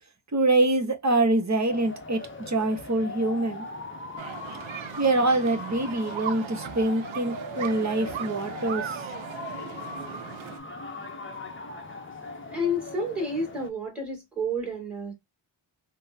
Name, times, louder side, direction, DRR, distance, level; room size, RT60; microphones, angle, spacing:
voice 1, 0.3-3.6 5.0-9.0, right 2 dB, 35° right, 0.9 m, -25 dB
sound 1, 1.7-13.7, left 3 dB, 25° left, 0.7 m, -40 dB
sound 2, 4.2-10.6, right 9 dB, 75° right, 0.5 m, -38 dB
voice 2, 12.5-15.1, left 1 dB, ahead, 2.1 m, -30 dB
3.6 x 2.1 x 2.7 m
wide cardioid pair, 80°, 48 cm